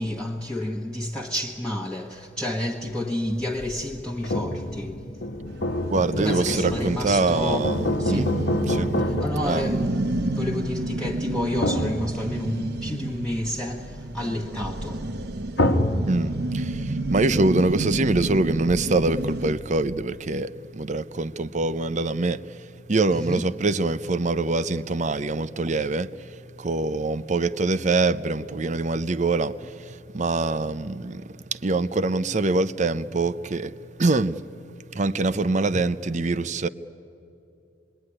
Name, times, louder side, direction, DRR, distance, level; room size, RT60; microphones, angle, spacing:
voice 1, 0.0-5.1 6.2-7.7 8.0-8.3 9.0-15.1 23.1-23.4, left 1 dB, 5° left, 1.2 m, -30 dB
sound 1, 3.3-20.1, left 1 dB, 70° left, 1.3 m, -29 dB
sound 2, 5.5-19.5, right 1 dB, 60° right, 1.0 m, -30 dB
voice 2, 5.9-8.4 8.7-9.0 9.5-9.7 16.1-34.4 34.9-36.7, right 3 dB, 40° right, 0.6 m, -24 dB
27.0 x 22.0 x 9.9 m
head